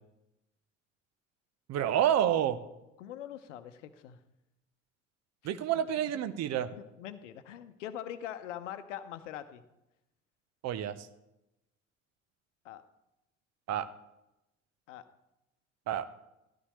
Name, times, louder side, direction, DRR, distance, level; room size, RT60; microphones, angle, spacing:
voice 1, 1.7-2.6 5.4-6.7 10.6-11.1 13.7-13.9 15.9-16.1, right 10 dB, 45° right, 12 dB, 0.8 m, -29 dB
voice 2, 3.0-4.2 6.8-9.6 12.6-12.8 14.9-15.1, left 10 dB, 70° left, 12 dB, 0.8 m, -43 dB
13.5 x 12.5 x 3.1 m, 0.91 s
figure-of-eight pair, 60°, 38 cm